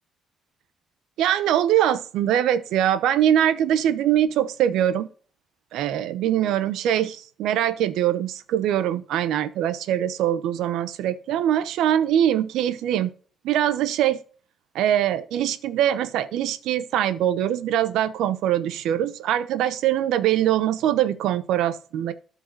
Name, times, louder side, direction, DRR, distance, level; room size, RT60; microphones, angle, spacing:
voice 1, 1.2-5.1 5.7-13.1 13.4-14.2 14.7-22.1, right 11 dB, 85° right, 0.8 m, -22 dB
12.5 x 5.6 x 3.9 m
cardioid pair, 90°, 0 cm